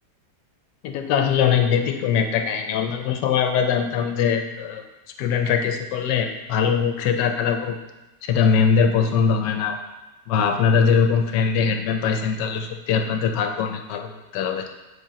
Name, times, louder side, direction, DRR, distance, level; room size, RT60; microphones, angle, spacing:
voice 1, 0.8-4.8 5.2-7.8 8.2-9.8 10.3-14.7, left 6 dB, 90° left, 5 dB, 1.2 m, -21 dB
10.0 x 3.8 x 2.8 m, 1.0 s
omnidirectional pair, 1.8 m